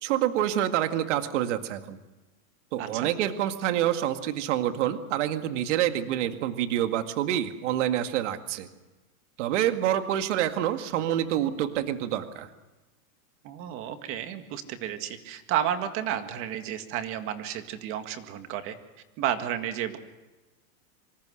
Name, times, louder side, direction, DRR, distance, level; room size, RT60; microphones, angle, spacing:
voice 1, 0.0-2.0 2.7-8.7 9.4-12.5, right 11 dB, 55° right, 7 dB, 2.1 m, -27 dB
voice 2, 2.8-3.1 13.4-18.7 19.2-20.0, right 10 dB, 30° right, 8 dB, 1.9 m, -32 dB
26.5 x 25.5 x 6.5 m, 1.1 s
supercardioid pair, 170°, 44 cm